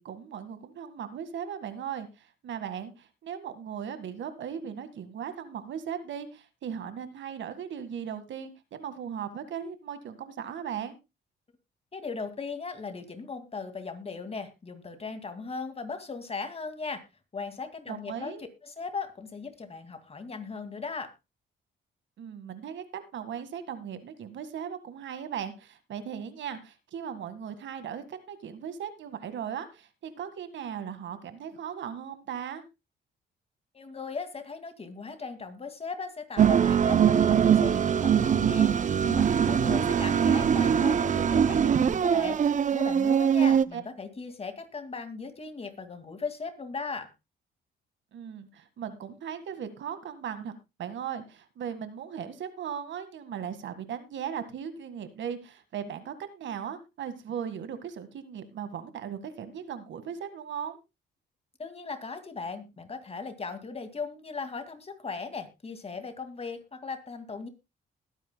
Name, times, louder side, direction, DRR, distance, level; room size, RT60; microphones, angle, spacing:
voice 1, 0.0-11.0 17.9-18.5 22.2-22.8 23.1-32.6 39.6-40.2 43.5-43.8 48.1-50.5 50.8-60.8, right 8 dB, 70° right, 11 dB, 1.8 m, -38 dB
voice 2, 11.9-17.0 17.3-18.4 18.6-21.1 33.7-42.4 42.7-47.1 61.6-67.5, left 4 dB, 30° left, 8 dB, 2.2 m, -38 dB
sound 1, 36.4-43.6, right 8 dB, 40° right, 0.6 m, -22 dB
20.5 x 9.3 x 2.2 m, 0.25 s
cardioid pair, 90°, 20 cm